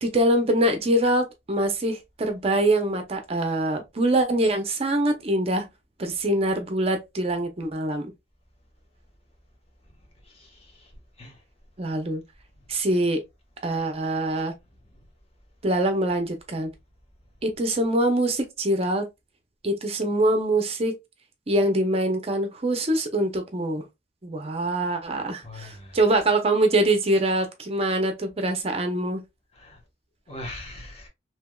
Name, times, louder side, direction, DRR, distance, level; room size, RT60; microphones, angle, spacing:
voice 1, 0.0-5.7 6.0-8.1 11.8-12.2 12.7-13.2 13.6-14.5 15.6-16.7 17.4-19.1 19.6-21.0 21.5-23.8 24.2-29.2, right 1 dB, 35° right, 0.6 m, -24 dB
voice 2, 10.2-10.9 11.2-11.4 14.9-15.0 25.4-26.2 29.5-29.8 30.3-31.1, left 1 dB, 35° left, 1.0 m, -42 dB
3.3 x 2.9 x 2.2 m
head